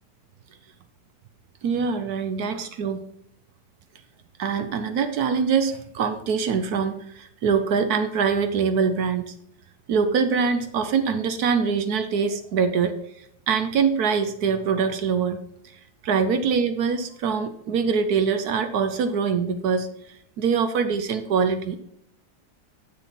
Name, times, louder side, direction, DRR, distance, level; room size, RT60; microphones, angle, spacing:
voice 1, 1.6-3.0 4.4-9.3 9.9-13.0 13.5-15.4 16.0-19.9 20.4-21.8, right 6 dB, 65° right, 9 dB, 1.1 m, -23 dB
7.8 x 6.9 x 4.2 m, 0.73 s
omnidirectional pair, 1.9 m